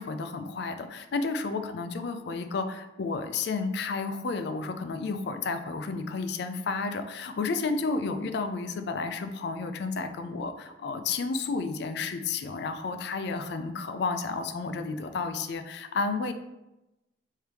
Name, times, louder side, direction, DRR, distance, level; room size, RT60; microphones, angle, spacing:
voice 1, 0.0-16.3, left 4 dB, 65° left, 8 dB, 0.4 m, -31 dB
3.3 x 2.7 x 4.6 m, 0.97 s
head